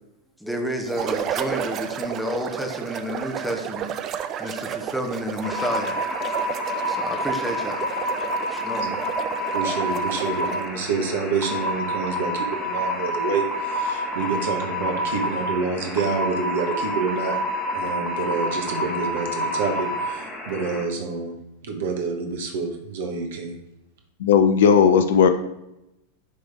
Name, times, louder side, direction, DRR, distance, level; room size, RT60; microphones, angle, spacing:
voice 1, 0.4-3.9 4.4-5.9 6.2-6.3 6.9-7.9 8.5-8.8, equal, ahead, 2 dB, 0.9 m, -30 dB
sound 1, 0.9-10.8, right 9 dB, 30° right, 0.4 m, -32 dB
sound 2, 5.4-20.8, equal, 20° left, 1.4 m, -28 dB
voice 2, 9.5-17.4 17.7-21.3 21.6-23.5, right 4 dB, 55° right, 3 dB, 1.2 m, -28 dB
voice 3, 24.2-25.3, left 7 dB, 60° left, 9 dB, 0.5 m, -16 dB
9.7 x 3.4 x 3.5 m, 0.88 s
figure-of-eight pair, 90°, 0 cm